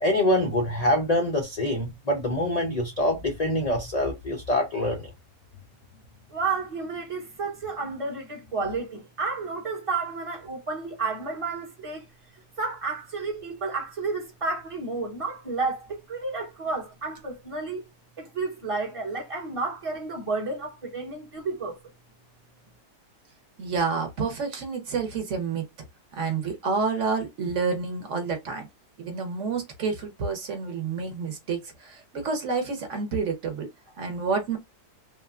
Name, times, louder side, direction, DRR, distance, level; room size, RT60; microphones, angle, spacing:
voice 1, 0.0-5.1, left 1 dB, 75° left, 0.3 m, -25 dB
voice 2, 6.3-12.0 12.6-17.8 18.2-21.8, right 4 dB, 30° right, 0.7 m, -31 dB
voice 3, 23.6-25.6 26.1-28.7 29.0-33.7 34.0-34.6, right 5 dB, 60° right, 0.9 m, -29 dB
3.5 x 2.2 x 2.3 m
omnidirectional pair, 1.7 m